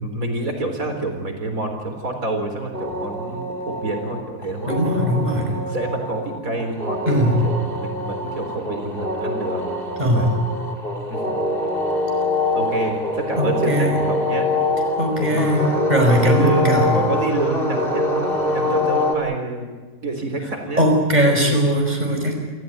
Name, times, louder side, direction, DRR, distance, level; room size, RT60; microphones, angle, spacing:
voice 1, 0.0-5.2 5.7-10.2 11.1-11.5 12.5-14.5 15.1-15.5 16.1-19.7 20.0-20.9 21.2-21.6, right 2 dB, 80° right, 4 dB, 4.4 m, -28 dB
sound 1, 2.7-19.1, left 2 dB, 40° left, 2.8 m, -24 dB
voice 2, 4.7-5.7 7.1-7.4 10.0-10.3 13.4-14.0 15.0-17.0 20.8-22.4, equal, 30° right, 2 dB, 5.6 m, -19 dB
28.5 x 14.5 x 9.3 m, 1.4 s
omnidirectional pair, 1.4 m